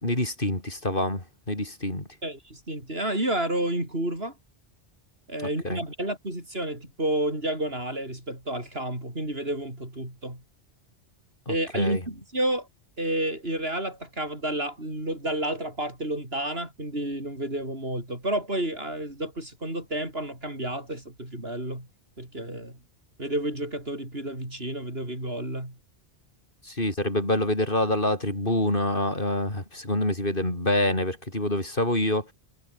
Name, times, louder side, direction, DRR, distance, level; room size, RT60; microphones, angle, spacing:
voice 1, 0.0-2.1 5.6-5.8 11.5-12.0 26.6-32.3, left 1 dB, 50° left, 6.0 m, -26 dB
voice 2, 2.2-4.3 5.3-10.4 11.5-12.7 13.0-21.9 22.2-22.8 23.2-25.8, right 1 dB, 65° right, 8.4 m, -30 dB
omnidirectional pair, 1.1 m